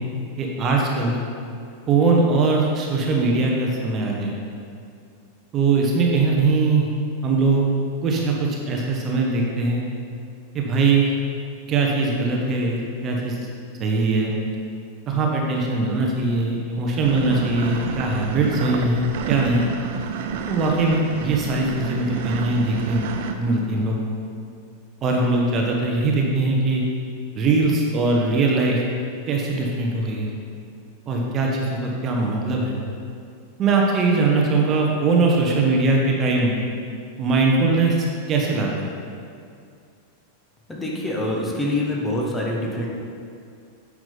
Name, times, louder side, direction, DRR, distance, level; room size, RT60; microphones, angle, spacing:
voice 1, 0.4-1.2 1.9-4.3 5.5-6.9 7.2-7.6 8.0-9.8 10.5-11.1 11.7-13.4 13.8-14.3 15.1-19.7 20.5-23.0 23.4-24.0 25.0-26.8 27.3-28.8 29.3-30.3 31.1-32.8 33.6-36.5 37.2-37.9 38.3-38.9, right 3 dB, 30° right, -1 dB, 1.1 m, -21 dB
sound 1, 17.0-23.3, right 7 dB, 50° right, 0.6 m, -30 dB
voice 2, 40.7-42.9, left 1 dB, 10° left, -3 dB, 1.3 m, -25 dB
9.0 x 6.2 x 4.0 m, 2.3 s
figure-of-eight pair, 90°, 0 cm